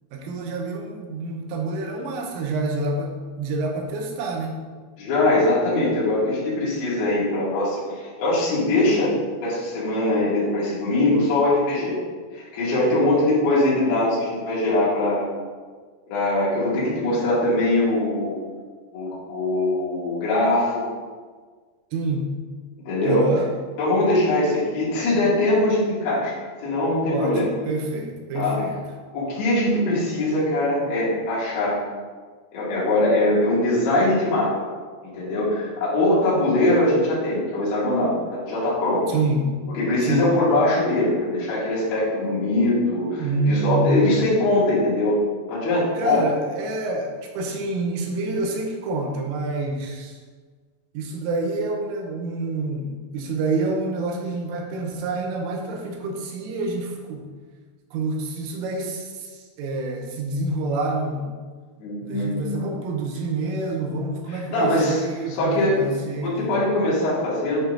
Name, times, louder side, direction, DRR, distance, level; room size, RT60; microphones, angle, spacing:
voice 1, 0.1-4.6 21.9-22.3 23.0-23.5 27.1-28.8 39.1-39.6 40.1-40.3 43.2-44.4 46.0-50.2 51.0-57.3 57.9-61.3 62.0-66.6, right 2 dB, 90° right, 0 dB, 3.5 m, -27 dB
voice 2, 5.0-9.1 9.4-12.0 12.3-15.3 16.1-18.4 18.9-20.9 22.9-23.3 23.8-26.3 26.6-27.5 28.3-28.6 29.1-31.9 32.5-34.5 35.0-39.1 39.7-45.2 45.5-46.2 61.8-62.4 64.3-65.0 65.4-65.9 66.2-67.6, left 1 dB, 65° left, -8 dB, 4.4 m, -22 dB
10.0 x 4.5 x 4.0 m, 1.5 s
omnidirectional pair, 5.8 m